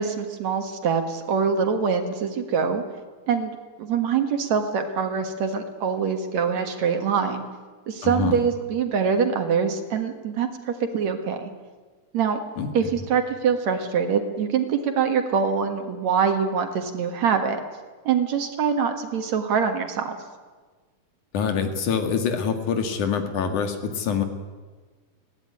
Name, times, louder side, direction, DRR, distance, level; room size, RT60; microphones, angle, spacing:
voice 1, 0.0-2.8 3.3-3.5 3.8-7.5 7.9-11.5 12.1-12.4 12.7-17.6 18.1-20.2, right 6 dB, 60° right, 6 dB, 2.6 m, -24 dB
voice 2, 8.0-8.4 12.6-12.7 21.3-24.2, left 6 dB, 65° left, 6 dB, 3.2 m, -25 dB
21.0 x 17.5 x 9.6 m, 1.4 s
omnidirectional pair, 3.9 m